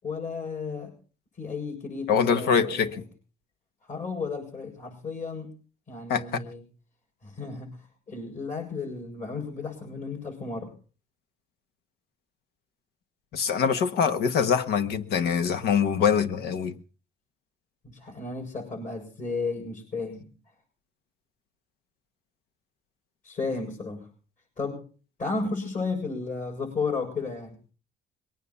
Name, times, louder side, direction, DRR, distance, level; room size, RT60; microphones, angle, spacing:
voice 1, 0.0-0.9 1.4-3.0 3.9-5.5 5.9-6.6 7.2-7.8 8.1-10.7 17.8-20.3 23.2-24.1 24.6-24.8 25.2-27.6, left 4 dB, 45° left, 7.0 m, -33 dB
voice 2, 2.1-3.0 6.1-6.4 13.3-16.7, left 7 dB, 75° left, 1.4 m, -24 dB
22.0 x 9.3 x 5.6 m
cardioid pair, 110°, 17 cm